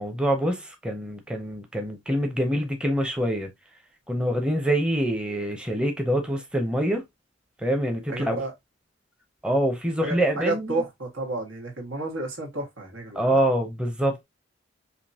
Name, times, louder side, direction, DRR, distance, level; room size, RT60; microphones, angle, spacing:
voice 1, 0.0-3.5 4.1-7.0 7.6-8.4 9.4-10.8 13.1-14.2, right 1 dB, 5° right, 0.7 m, -25 dB
voice 2, 8.1-8.5 10.0-13.4, right 2 dB, 80° right, 1.8 m, -31 dB
5.1 x 2.9 x 2.8 m
head